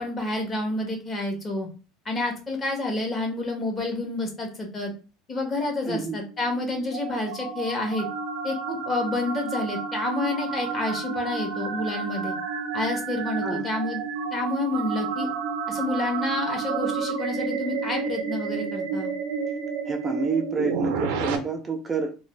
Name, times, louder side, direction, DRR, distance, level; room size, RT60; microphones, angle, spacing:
voice 1, 0.0-1.7 2.0-4.9 5.3-8.1 8.4-12.3 12.7-14.0 14.3-15.3 15.7-19.1, left 2 dB, 25° left, 1.0 m, -29 dB
voice 2, 5.9-6.2 13.4-13.7 19.9-22.2, right 4 dB, 20° right, 0.4 m, -28 dB
sound 1, 6.3-21.4, right 5 dB, 85° right, 0.5 m, -30 dB
2.5 x 2.1 x 3.2 m
supercardioid pair, 125°, 0 cm